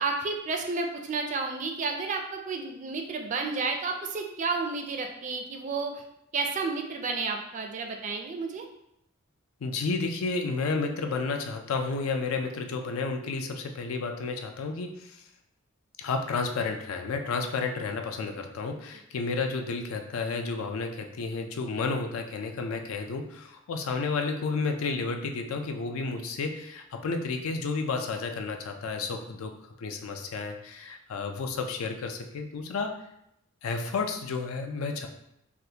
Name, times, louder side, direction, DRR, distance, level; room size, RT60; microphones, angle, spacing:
voice 1, 0.0-6.0 6.3-8.6, right 4 dB, 35° right, 3 dB, 0.4 m, -31 dB
voice 2, 9.6-15.2 16.0-29.5 29.8-32.9 33.6-35.1, left 4 dB, 80° left, 5 dB, 0.4 m, -31 dB
3.4 x 2.4 x 2.8 m, 0.79 s
head